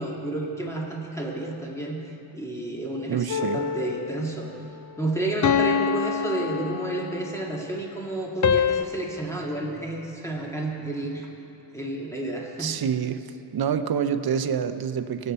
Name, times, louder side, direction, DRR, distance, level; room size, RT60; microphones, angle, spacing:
voice 1, 0.0-2.0 2.3-4.5 5.0-11.3 11.7-12.8, right 2 dB, 5° left, -3 dB, 1.9 m, -30 dB
voice 2, 3.1-3.6 12.6-13.2 13.5-15.3, right 7 dB, 55° right, 10 dB, 0.7 m, -26 dB
sound 1, 3.3-4.3 5.4-7.3 8.4-8.8, left 7 dB, 40° left, 0.5 m, -25 dB
17.0 x 7.0 x 4.3 m, 2.7 s
cardioid pair, 65°, 46 cm